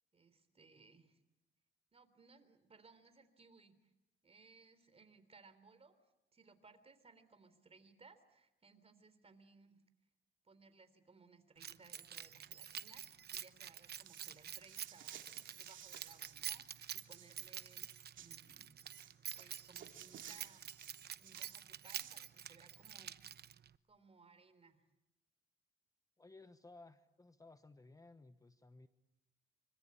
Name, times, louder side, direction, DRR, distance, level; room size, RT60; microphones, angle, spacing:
voice 1, 0.1-1.2 1.9-3.9 4.2-6.0 6.3-9.8 10.4-15.2 15.5-20.8 21.2-23.6 23.9-24.9, right 4 dB, 30° right, 11 dB, 3.5 m, -64 dB
Keys jangling, 11.6-23.7, right 9 dB, 55° right, 0.9 m, -48 dB
sound 1, 14.0-16.4 16.7-18.4 18.8-22.3, right 10 dB, 75° right, 2.7 m, -57 dB
voice 2, 26.2-28.9, left 3 dB, 15° left, 11 dB, 1.1 m, -59 dB
25.5 x 25.0 x 8.6 m, 0.90 s
cardioid pair, 90°, 20 cm